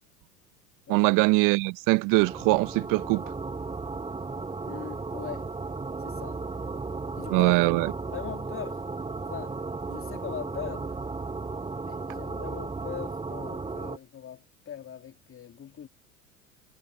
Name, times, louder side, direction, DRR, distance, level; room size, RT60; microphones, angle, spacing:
voice 1, 0.9-3.2 7.3-7.9, right 26 dB, 45° right, 0.8 m, -22 dB
sound 1, 2.2-14.0, right 3 dB, 15° right, 2.0 m, -35 dB
voice 2, 4.7-5.5 6.0-6.4 7.1-7.5 8.1-8.9 9.3-9.6 9.9-11.0 11.8-15.9, left 9 dB, 30° left, 2.9 m, -41 dB
figure-of-eight pair, 75°, 44 cm